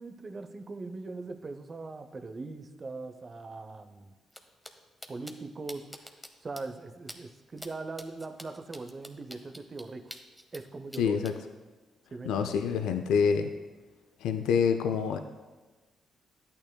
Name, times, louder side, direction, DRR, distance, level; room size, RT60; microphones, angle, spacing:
voice 1, 0.0-4.1 5.1-6.0 6.4-10.2 10.5-11.2 12.1-12.6, right 3 dB, 40° right, 8 dB, 0.7 m, -41 dB
sound 1, 4.3-4.4 4.6-4.7 5.0-5.3 5.7-6.3 6.6-6.7 7.1-7.2 7.6-7.7 8.0-10.6 10.9-11.3, equal, ahead, 0.9 m, -45 dB
voice 2, 11.0-11.3 12.3-13.5 14.2-15.2, left 6 dB, 85° left, 7 dB, 0.3 m, -26 dB
12.0 x 8.6 x 2.3 m, 1.3 s
supercardioid pair, 60°, 0 cm